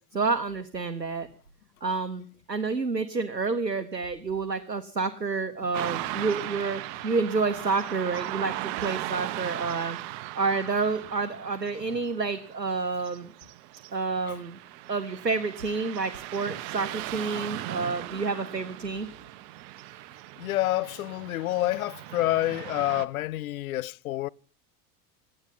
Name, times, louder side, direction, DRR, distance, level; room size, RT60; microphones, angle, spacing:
voice 1, 0.1-1.3 1.8-10.0 10.3-13.3 13.9-14.6 14.9-19.1, right 4 dB, 90° right, 1.1 m, -29 dB
Car passing by / Traffic noise roadway noise, 5.7-23.0, right 16 dB, 45° right, 1.3 m, -38 dB
voice 2, 20.4-24.3, left 16 dB, 60° left, 0.7 m, -28 dB
18.0 x 13.0 x 5.7 m
figure-of-eight pair, 75°, 48 cm